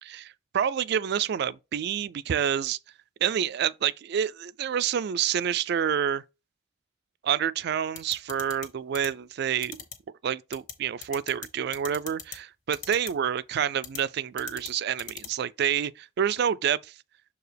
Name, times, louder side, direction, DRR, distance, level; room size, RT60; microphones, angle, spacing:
voice 1, 0.0-2.8 3.2-6.2 7.2-9.8 10.2-16.9, right 8 dB, 55° right, 0.3 m, -28 dB
sound 1, 8.0-8.7 8.9-9.1 9.6-9.9 10.5-10.7 11.0-11.5 11.7-12.4 12.7-13.1 13.8-14.0 14.4-14.7 15.0-15.3, left 8 dB, 40° left, 1.4 m, -38 dB
6.7 x 4.6 x 3.3 m
head